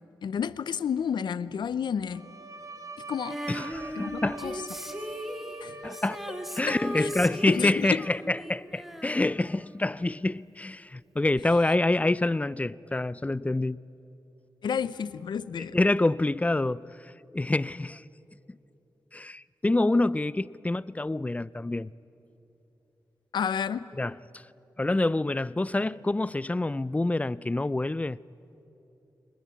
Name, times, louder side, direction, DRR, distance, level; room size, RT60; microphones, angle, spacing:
voice 1, 0.2-2.3 3.1-3.4 4.0-4.6 5.6-5.8 6.7-7.1 7.5-8.1 14.6-15.8 23.3-23.9, left 7 dB, 85° left, 0.6 m, -31 dB
Bowed string instrument, 2.1-7.9, right 3 dB, 50° right, 2.0 m, -44 dB
Female singing, 3.3-10.2 11.4-11.5, equal, 5° right, 2.0 m, -38 dB
voice 2, 3.5-4.4 5.8-6.2 6.6-13.8 15.6-18.0 19.1-21.9 24.0-24.4 24.8-28.2, left 2 dB, 20° left, 0.4 m, -27 dB
24.5 x 19.5 x 8.4 m
cardioid pair, 60°, 8 cm